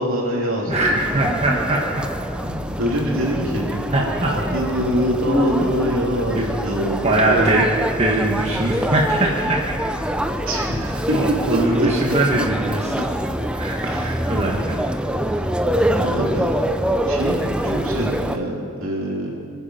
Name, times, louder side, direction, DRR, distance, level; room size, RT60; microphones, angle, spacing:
voice 1, 0.0-1.2 2.8-3.7 4.3-7.7 10.5-11.1 11.5-11.9 13.9-14.1 15.8-16.5 17.0-17.4 17.6-19.3, equal, 65° right, -3 dB, 3.4 m, -24 dB
sound 1, 0.7-18.4, equal, 5° right, 0.5 m, -25 dB
voice 2, 0.7-2.1 2.4-2.6 3.9-4.6 6.3-6.5 7.0-7.7 8.0-9.8 11.1-12.9 13.5-14.7, right 2 dB, 30° right, -2 dB, 1.4 m, -21 dB
25.0 x 9.8 x 5.8 m, 2.4 s
head